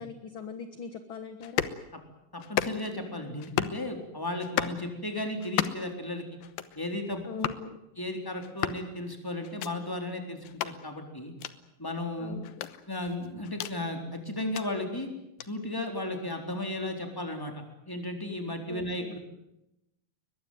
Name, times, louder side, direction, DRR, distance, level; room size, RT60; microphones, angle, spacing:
voice 1, 0.0-1.7 7.2-7.8 12.2-12.6 18.7-19.2, left 6 dB, 50° left, 9 dB, 1.6 m, -41 dB
sound 1, 1.4-1.8 2.4-3.0 3.4-3.8 4.4-4.8 5.4-5.9 6.4-6.8 7.4-7.6 8.4-8.8 9.4-9.7 10.4-10.7 11.4-11.5 12.4-13.8 14.4-14.7 15.4-15.5, left 12 dB, 85° left, 2.9 m, -33 dB
voice 2, 2.3-6.2 6.8-7.5 8.0-11.3 11.8-12.4 12.9-15.1 15.4-17.5 17.9-19.2, left 1 dB, 5° left, 4 dB, 3.6 m, -35 dB
22.0 x 21.5 x 9.4 m, 0.90 s
omnidirectional pair, 4.0 m